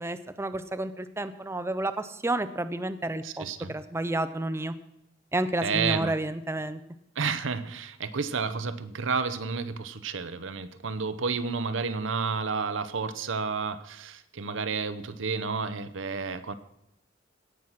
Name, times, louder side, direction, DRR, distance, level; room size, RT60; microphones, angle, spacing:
voice 1, 0.0-4.7 5.3-6.8, right 2 dB, 15° right, 11 dB, 0.5 m, -30 dB
voice 2, 3.2-3.7 5.6-6.1 7.2-16.5, right 5 dB, 85° right, 12 dB, 0.8 m, -31 dB
17.0 x 6.2 x 5.8 m, 0.83 s
head